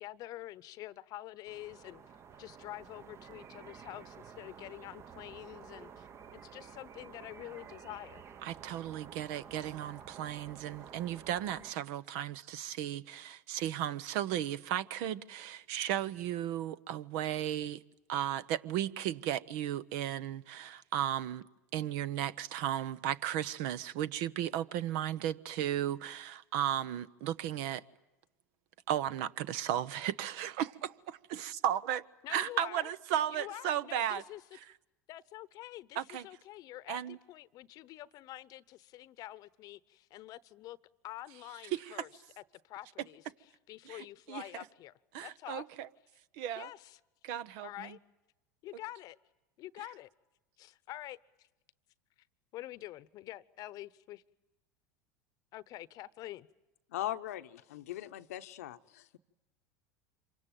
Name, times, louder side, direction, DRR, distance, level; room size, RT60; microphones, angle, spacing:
voice 1, 0.0-2.0 2.4-8.2 32.2-32.9 33.3-34.4 35.1-40.8 41.0-42.1 42.6-43.2 43.7-44.9 45.2-45.7 46.6-47.0 47.6-48.0 48.6-49.2 49.6-50.1 50.6-51.5 52.5-54.2 55.5-56.5, left 15 dB, 50° left, 0.9 m, -47 dB
sound 1, 1.5-11.7, right 7 dB, 35° right, 1.0 m, -52 dB
voice 2, 8.4-17.8 18.1-21.5 21.7-27.8 28.9-32.0 32.3-34.2 36.0-36.3 36.9-37.2 41.7-42.0 43.9-44.4 45.1-45.9 46.3-46.7 47.2-48.0, right 11 dB, 65° right, 0.9 m, -35 dB
voice 3, 56.9-59.2, left 13 dB, 80° left, 0.9 m, -40 dB
27.0 x 24.5 x 9.1 m
hypercardioid pair, 90°, 8 cm